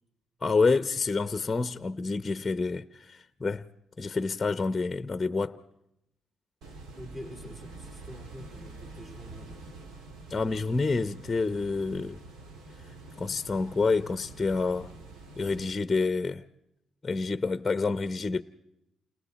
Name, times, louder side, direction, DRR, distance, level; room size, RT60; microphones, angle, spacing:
voice 1, 0.4-3.7 4.0-5.6 10.3-12.2 12.8-14.9 15.4-16.4 17.0-18.4, left 4 dB, 25° left, 0.7 m, -28 dB
sound 1, 6.6-15.7, right 2 dB, 80° right, 2.7 m, -46 dB
voice 2, 7.0-9.6, equal, 25° right, 3.9 m, -45 dB
29.0 x 29.0 x 4.2 m
cardioid pair, 90°, 0 cm